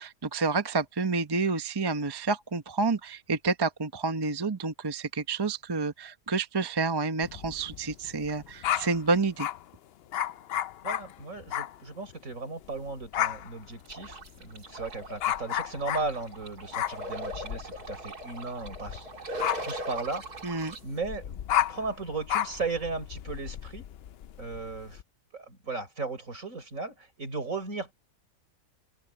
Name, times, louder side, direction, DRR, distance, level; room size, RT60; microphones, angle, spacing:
voice 1, 0.0-9.5 20.4-20.7, right 3 dB, 20° right, 0.7 m, -29 dB
sound 1, 7.2-9.6 10.1-11.8 12.1-12.4 12.6-25.0, left 11 dB, 85° left, 0.5 m, -33 dB
voice 2, 10.8-19.4 19.6-20.4 20.8-21.4 21.7-23.9 24.4-25.0 25.3-27.9, right 3 dB, 55° right, 5.0 m, -36 dB
sound 2, 13.9-20.8, right 1 dB, 80° right, 3.2 m, -40 dB
open air
omnidirectional pair, 1.6 m